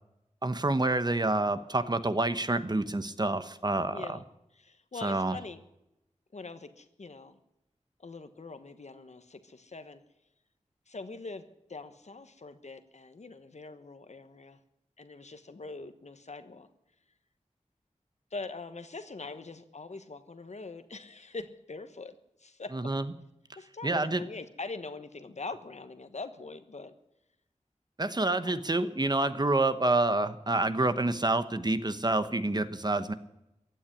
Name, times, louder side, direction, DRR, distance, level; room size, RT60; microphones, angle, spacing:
voice 1, 0.4-4.2 5.0-5.4 22.7-23.1 23.8-24.2 28.0-33.1, right 2 dB, 35° right, 12 dB, 1.1 m, -28 dB
voice 2, 3.9-4.2 4.5-5.6 6.3-7.4 8.0-10.0 10.9-11.4 11.7-14.6 15.0-16.7 18.3-22.8 23.6-26.9 28.4-28.5, left 3 dB, 65° left, 10 dB, 1.2 m, -43 dB
15.5 x 9.1 x 9.9 m, 0.86 s
wide cardioid pair, 70°, 13 cm